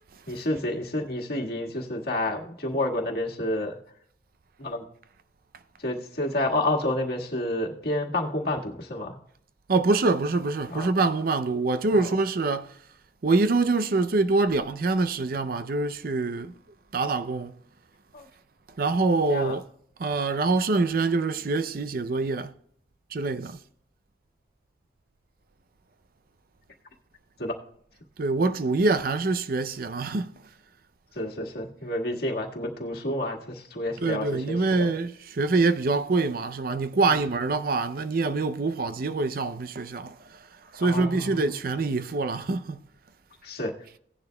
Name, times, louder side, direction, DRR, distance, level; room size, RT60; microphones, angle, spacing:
voice 1, 0.3-3.8 4.6-4.8 5.8-9.2 10.7-10.9 11.9-12.1 18.1-18.3 19.3-19.5 27.4-27.5 31.1-34.9 37.1-37.2 40.8-41.5 43.4-43.7, left 1 dB, 60° left, 1.7 m, -29 dB
voice 2, 9.7-12.7 13.2-16.5 16.9-17.5 18.8-19.6 20.0-22.5 23.1-23.6 28.2-30.3 34.0-40.1 40.7-42.8, right 3 dB, 55° right, 0.5 m, -25 dB
17.0 x 10.5 x 2.2 m
head